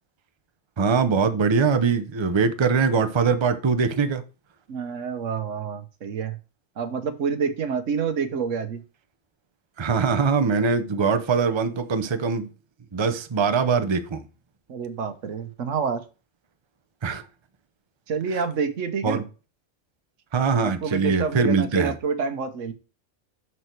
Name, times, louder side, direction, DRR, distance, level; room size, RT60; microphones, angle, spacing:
voice 1, 0.8-4.2 9.8-12.5 12.9-14.2 17.0-17.2 19.0-19.2 20.3-21.9, right 5 dB, 30° right, 0.7 m, -22 dB
voice 2, 4.7-6.4 6.8-8.8 14.7-16.0 18.1-19.2 20.6-22.7, right 6 dB, 85° right, 1.3 m, -28 dB
6.4 x 5.9 x 4.5 m
omnidirectional pair, 1.3 m